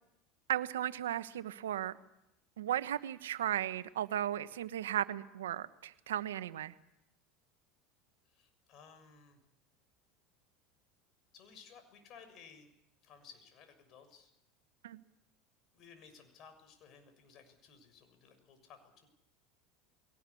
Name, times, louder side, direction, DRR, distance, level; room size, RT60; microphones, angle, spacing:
voice 1, 0.5-2.0 2.6-6.7 14.8-15.0, right 11 dB, 85° right, 12 dB, 1.2 m, -35 dB
voice 2, 8.3-9.4 11.3-12.7 13.0-14.3 15.7-19.1, left 6 dB, 50° left, 8 dB, 6.7 m, -58 dB
22.5 x 19.0 x 8.5 m, 0.85 s
hypercardioid pair, 90°, 0 cm